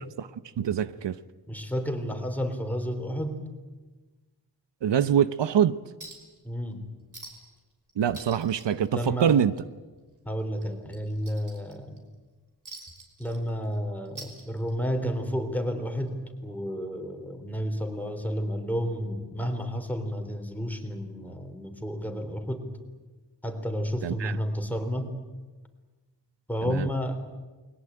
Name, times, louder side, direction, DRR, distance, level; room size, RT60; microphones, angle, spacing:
voice 1, 0.6-1.2 4.8-5.8 8.0-9.5 24.0-24.4 26.6-26.9, right 9 dB, 85° right, 0.9 m, -24 dB
voice 2, 1.5-3.4 6.4-6.9 8.9-9.3 10.2-12.0 13.2-22.7 23.4-25.1 26.5-27.2, equal, 5° left, 3.6 m, -31 dB
Chink clink, 6.0-6.4 6.7-6.8 7.1-7.6 7.9-9.6 9.9-10.1 10.6-12.0 12.7-13.8 14.1-15.0 16.1-16.2, right 2 dB, 45° right, 5.5 m, -46 dB
29.0 x 21.5 x 8.9 m
wide cardioid pair, 115°, 42 cm